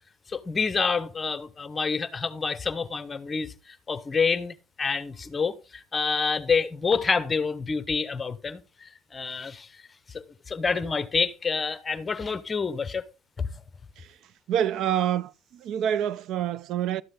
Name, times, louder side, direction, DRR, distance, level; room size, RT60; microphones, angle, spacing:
voice 1, 0.3-9.8 10.1-13.0 13.4-13.6, left 5 dB, 20° left, 0.9 m, -28 dB
voice 2, 14.5-17.0, right 10 dB, 55° right, 0.6 m, -27 dB
12.5 x 7.9 x 3.9 m
cardioid pair, 125°, 0 cm